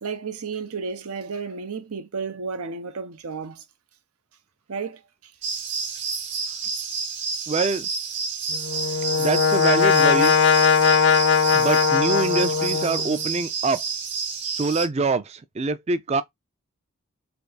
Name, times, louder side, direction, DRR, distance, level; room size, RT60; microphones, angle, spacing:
voice 1, 0.0-3.6 4.7-5.0, right 5 dB, 90° right, 0.7 m, -32 dB
sound 1, 5.4-14.9, right 5 dB, 55° right, 1.0 m, -29 dB
voice 2, 7.5-7.9 9.2-10.3 11.5-13.8 14.4-16.2, right 3 dB, 30° right, 0.4 m, -25 dB
Brass instrument, 8.5-13.3, left 6 dB, 55° left, 0.4 m, -20 dB
3.4 x 2.6 x 4.0 m
head